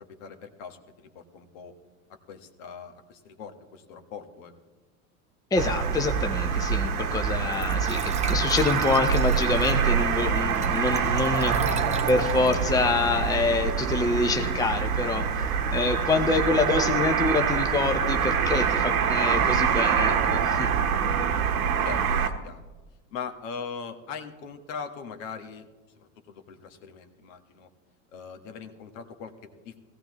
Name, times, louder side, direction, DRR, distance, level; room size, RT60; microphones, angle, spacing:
voice 1, 0.2-1.7 2.3-4.5 21.8-22.7 23.1-25.7 26.0-27.7 28.1-29.8, left 6 dB, 60° left, 7 dB, 1.5 m, -40 dB
voice 2, 5.5-15.5 15.7-20.7, left 3 dB, 10° left, 6 dB, 0.8 m, -26 dB
sound 1, 5.6-22.3, right 6 dB, 75° right, 1.2 m, -25 dB
Glass / Trickle dribble / Fill (with liquid), 6.2-13.6, right 3 dB, 15° right, 1.1 m, -42 dB
17.0 x 15.5 x 3.1 m, 1.2 s
hypercardioid pair, 85°, 44 cm